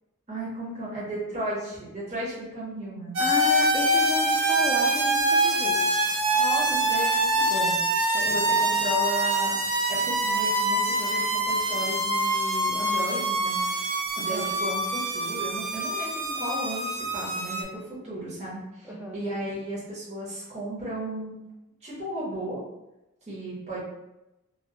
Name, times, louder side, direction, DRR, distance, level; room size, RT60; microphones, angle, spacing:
voice 1, 0.3-3.2 6.3-9.6 9.9-13.6 14.1-21.3 21.8-22.6 23.3-23.8, right 1 dB, 30° right, -8 dB, 0.7 m, -34 dB
voice 2, 3.2-5.9 8.1-8.5 14.2-14.5 18.8-19.2, left 1 dB, 10° right, -3 dB, 0.3 m, -33 dB
sound 1, 3.2-17.6, right 1 dB, 80° right, 0.5 m, -25 dB
2.1 x 2.1 x 3.7 m, 0.97 s
head